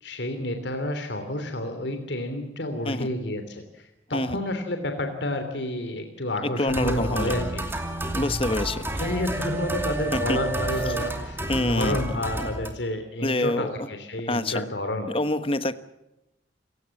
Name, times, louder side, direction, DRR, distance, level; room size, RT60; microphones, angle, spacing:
voice 1, 0.0-7.6 9.0-15.1, left 1 dB, 70° left, 6 dB, 3.0 m, -30 dB
voice 2, 6.4-7.3 8.1-8.8 10.1-10.4 11.5-12.5 13.2-13.9 14.3-14.7 15.1-15.7, left 1 dB, 30° left, 12 dB, 1.2 m, -27 dB
sound 1, 6.7-12.7, right 1 dB, 10° right, 2.7 m, -30 dB
28.0 x 17.0 x 7.2 m, 0.93 s
head